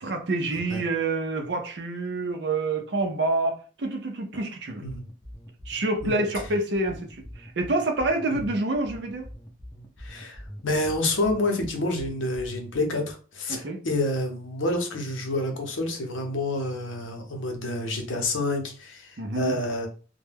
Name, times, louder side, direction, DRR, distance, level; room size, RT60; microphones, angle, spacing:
voice 1, 0.0-4.8 5.7-9.3 13.5-13.8 19.2-19.6, right 2 dB, 60° right, 0.5 m, -27 dB
sound 1, 4.8-12.8, equal, 15° left, 0.5 m, -43 dB
voice 2, 10.0-19.9, left 2 dB, 80° left, 0.7 m, -28 dB
2.1 x 2.1 x 3.3 m
head